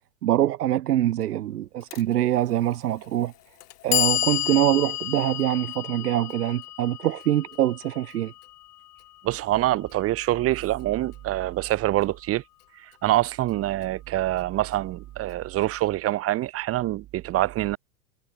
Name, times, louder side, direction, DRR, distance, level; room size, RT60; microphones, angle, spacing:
voice 1, 0.2-3.3 3.8-8.3, right 13 dB, 80° right, 5.3 m, -24 dB
Clock, 1.9-2.0 3.0-3.1 3.6-9.6, left 14 dB, 80° left, 2.3 m, -31 dB
voice 2, 9.2-12.4 13.0-17.8, right 15 dB, 30° right, 2.6 m, -25 dB
supercardioid pair, 145°, 46 cm